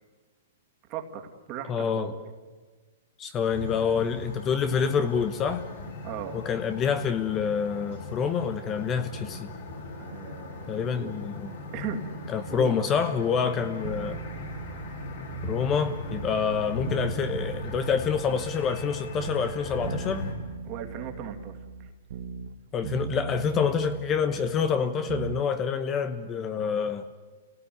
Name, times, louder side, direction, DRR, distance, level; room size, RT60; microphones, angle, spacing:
voice 1, 0.9-2.1 6.0-6.4 10.0-11.1 11.7-12.1 12.5-12.8 20.6-21.6, right 8 dB, 35° right, 4 dB, 2.5 m, -37 dB
voice 2, 1.7-2.1 3.2-5.7 6.3-9.5 10.7-11.5 12.3-14.2 15.4-20.3 22.7-27.1, left 6 dB, 20° left, 10 dB, 1.0 m, -27 dB
sound 1, 3.5-20.3, left 2 dB, 55° left, 6.8 m, -38 dB
sound 2, 13.8-16.5 16.8-18.9 19.1-22.6 22.8-25.4 25.7-25.8, right 7 dB, 60° right, 1.4 m, -38 dB
28.0 x 18.0 x 9.5 m, 1.4 s
hypercardioid pair, 155°, 0 cm